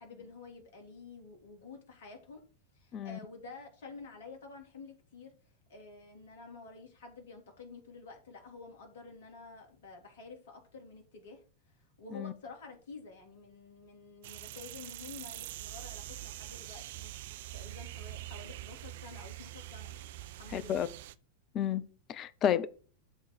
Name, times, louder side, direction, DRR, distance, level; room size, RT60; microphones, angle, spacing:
voice 1, 0.0-2.4 2.7-5.3 5.7-11.4 11.8-20.9, left 4 dB, 55° left, 3.2 m, -50 dB
sound 1, 14.2-21.1, right 15 dB, 55° right, 0.5 m, -44 dB
voice 2, 20.5-20.9 21.5-22.7, left 9 dB, 30° left, 0.7 m, -31 dB
12.0 x 4.0 x 4.8 m
figure-of-eight pair, 90°, 0 cm